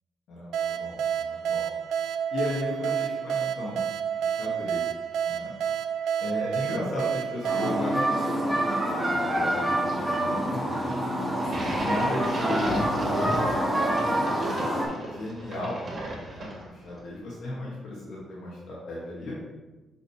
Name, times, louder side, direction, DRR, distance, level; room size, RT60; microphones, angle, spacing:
voice 1, 0.3-1.6 2.3-3.8 4.1-4.9 5.2-5.5 6.2-11.1 11.7-13.5 14.3-15.8 16.3-19.3, left 1 dB, 70° left, -6 dB, 2.1 m, -35 dB
sound 1, 0.5-9.0, right 8 dB, 85° right, 0.5 m, -30 dB
sound 2, 7.4-14.9, right 1 dB, 5° right, 2.3 m, -26 dB
sound 3, 11.4-16.9, right 1 dB, 35° right, 2.5 m, -36 dB
7.0 x 6.5 x 3.3 m, 1.1 s
cardioid pair, 125°, 0 cm